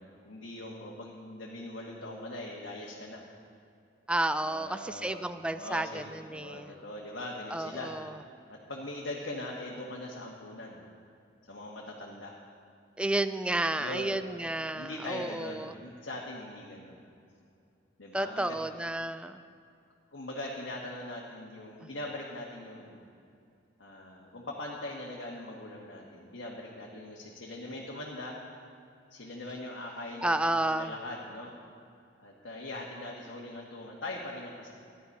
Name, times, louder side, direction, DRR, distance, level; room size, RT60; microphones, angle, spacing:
voice 1, 0.0-3.2 4.4-7.9 8.5-10.8 11.5-12.4 13.7-14.3 14.7-17.0 18.0-18.6 20.1-23.0 23.8-28.3 29.1-30.3 30.6-31.5 32.2-34.7, left 1 dB, 85° left, -3 dB, 1.4 m, -41 dB
voice 2, 4.1-6.7 7.5-8.1 13.0-15.7 18.1-19.4 30.2-30.9, right 1 dB, 5° right, 11 dB, 0.3 m, -31 dB
13.0 x 10.0 x 5.4 m, 2.5 s
head